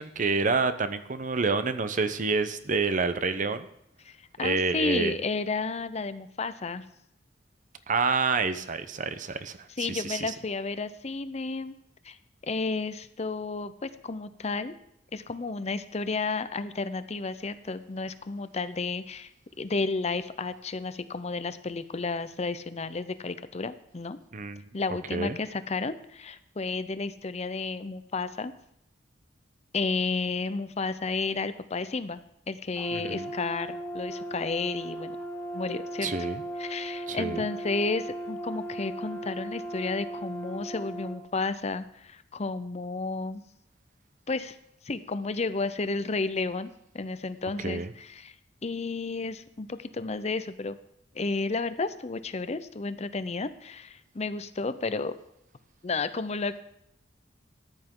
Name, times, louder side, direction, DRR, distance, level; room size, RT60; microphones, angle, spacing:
voice 1, 0.0-3.7 4.4-5.2 7.9-10.3 24.3-24.7 25.1-25.4 32.9-33.3 36.0-36.4 37.1-37.4 47.6-47.9, right 4 dB, 45° right, 10 dB, 0.7 m, -28 dB
voice 2, 4.0-6.8 9.8-11.7 12.0-12.2 12.4-14.7 15.1-19.3 19.6-24.2 24.7-28.5 29.7-32.2 32.5-35.2 35.5-36.1 36.6-43.4 44.3-44.6 44.8-46.7 46.9-48.3 48.6-50.8 51.1-55.1 55.8-56.6, left 3 dB, 35° left, 13 dB, 0.6 m, -32 dB
Brass instrument, 32.8-41.2, right 1 dB, 10° left, 1.5 m, -37 dB
14.0 x 10.0 x 3.8 m, 0.76 s
head